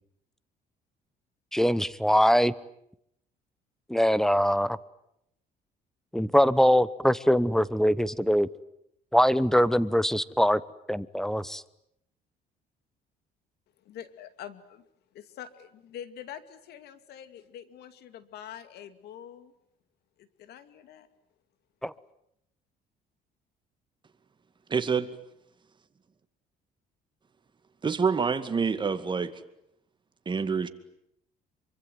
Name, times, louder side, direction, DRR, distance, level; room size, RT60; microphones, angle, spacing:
voice 1, 1.5-2.5 3.9-4.8 6.1-8.5 9.1-10.6 10.9-11.6 21.8-21.9, equal, 5° left, 19 dB, 1.0 m, -22 dB
voice 2, 13.8-14.9 15.1-19.5 20.2-21.1, left 9 dB, 75° left, 12 dB, 2.4 m, -45 dB
voice 3, 24.7-25.1 27.8-29.3 30.3-30.7, right 5 dB, 25° right, 10 dB, 2.2 m, -26 dB
26.0 x 24.0 x 9.4 m, 0.77 s
cardioid pair, 110°, 17 cm